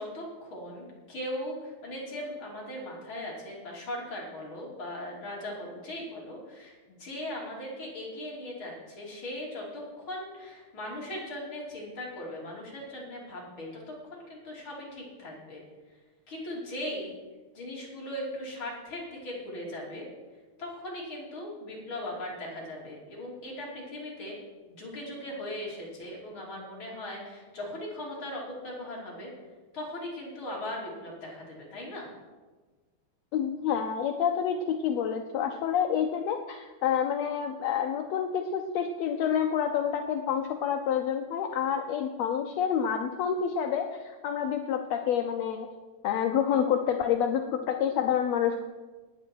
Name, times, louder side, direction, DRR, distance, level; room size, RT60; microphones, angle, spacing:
voice 1, 0.0-15.6 16.3-17.2 17.5-20.1 20.6-24.4 24.7-29.3 29.7-32.1, left 1 dB, 45° left, -4 dB, 3.7 m, -39 dB
voice 2, 33.3-45.7 46.0-48.6, left 8 dB, 75° left, 5 dB, 1.7 m, -28 dB
19.0 x 8.3 x 4.6 m, 1.3 s
omnidirectional pair, 3.3 m